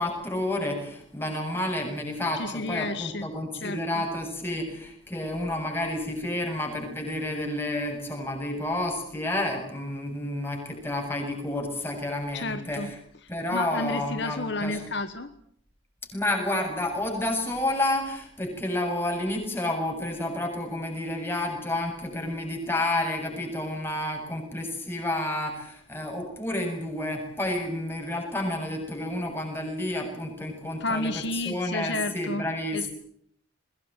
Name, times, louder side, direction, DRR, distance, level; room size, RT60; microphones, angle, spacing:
voice 1, 0.0-13.0 13.3-14.8 16.1-32.9, left 1 dB, 10° left, 2 dB, 7.5 m, -30 dB
voice 2, 2.3-3.3 3.6-4.0 12.3-12.9 13.5-15.3 30.8-32.4 32.7-32.9, left 2 dB, 55° left, 10 dB, 1.3 m, -31 dB
22.5 x 21.0 x 9.0 m, 0.65 s
head